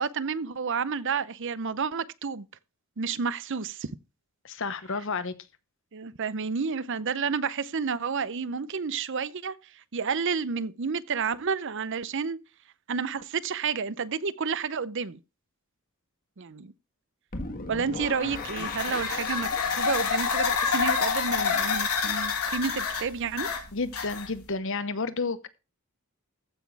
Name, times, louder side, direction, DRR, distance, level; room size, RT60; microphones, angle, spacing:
voice 1, 0.0-2.5 3.0-3.9 5.9-9.5 9.9-12.4 12.9-15.2 16.4-16.7 17.7-23.5, right 5 dB, 55° right, 0.6 m, -30 dB
voice 2, 4.4-5.3 23.7-25.5, left 4 dB, 60° left, 1.0 m, -31 dB
sound 1, 17.3-23.4, left 3 dB, 40° left, 1.7 m, -40 dB
sound 2, 18.3-24.5, left 6 dB, 85° left, 2.5 m, -28 dB
14.5 x 6.1 x 4.6 m
head